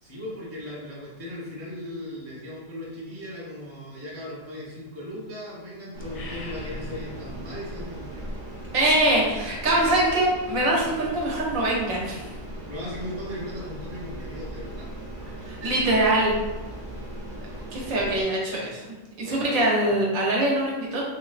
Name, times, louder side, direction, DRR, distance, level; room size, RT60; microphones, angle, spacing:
voice 1, 0.0-8.3 12.7-14.9 17.8-18.7 19.2-19.9, left 1 dB, 15° right, -6 dB, 0.6 m, -38 dB
sound 1, 5.9-18.2, right 1 dB, 50° right, 0.9 m, -38 dB
sound 2, 6.0-7.6, left 2 dB, 65° left, 0.7 m, -42 dB
voice 2, 8.7-12.3 15.4-16.3 17.5-18.8 19.2-21.0, right 1 dB, 70° right, -3 dB, 1.2 m, -23 dB
3.2 x 3.0 x 2.4 m, 1.1 s
omnidirectional pair, 1.5 m